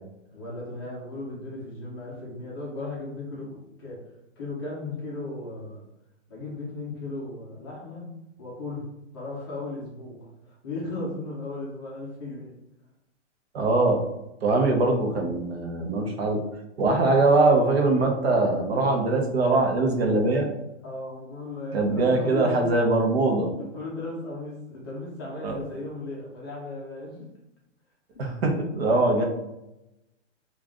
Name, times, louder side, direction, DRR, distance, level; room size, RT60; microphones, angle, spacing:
voice 1, 0.3-4.1 4.4-5.8 6.3-8.1 8.4-8.9 9.1-12.5 20.8-22.5 23.6-27.2 28.1-28.6, left 2 dB, 20° left, -5 dB, 0.6 m, -36 dB
voice 2, 13.5-14.0 14.4-16.4 16.8-20.5 21.7-23.5 25.4-25.6 28.2-29.2, right 2 dB, 55° right, 2 dB, 0.9 m, -22 dB
3.5 x 2.5 x 3.6 m, 0.88 s
hypercardioid pair, 170°, 37 cm